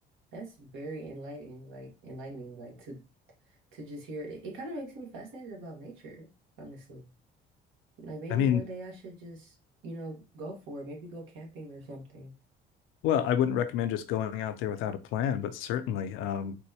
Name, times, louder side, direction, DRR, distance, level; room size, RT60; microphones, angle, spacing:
voice 1, 0.3-3.0 3.5-6.3 6.6-7.1 8.0-9.5 9.8-12.3, right 2 dB, 80° right, 1.4 m, -42 dB
voice 2, 8.3-8.6 13.0-16.6, left 9 dB, 85° left, 0.5 m, -28 dB
4.4 x 2.2 x 2.8 m
supercardioid pair, 85°, 20 cm